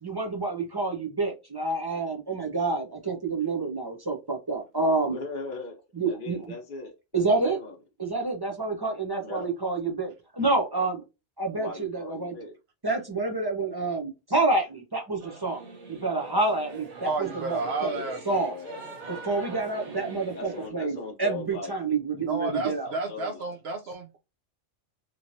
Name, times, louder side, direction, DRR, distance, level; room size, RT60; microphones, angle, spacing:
voice 1, 0.0-5.1 5.9-6.4 7.1-7.6 8.0-11.0 11.4-12.4 12.8-15.6 15.9-17.9 18.3-18.6 19.1-22.9, right 3 dB, 25° right, 0.5 m, -28 dB
voice 2, 5.1-5.8 6.0-7.7 9.2-9.5 10.7-10.9 11.6-12.5 17.8-18.8 20.3-21.7 22.5-23.5 23.8-23.9, left 3 dB, 50° left, 0.8 m, -39 dB
Singing / Musical instrument, 15.2-20.7, right 3 dB, 90° right, 1.2 m, -42 dB
voice 3, 17.0-18.2 22.2-24.2, right 3 dB, 70° right, 0.8 m, -31 dB
3.0 x 3.0 x 2.6 m
omnidirectional pair, 1.2 m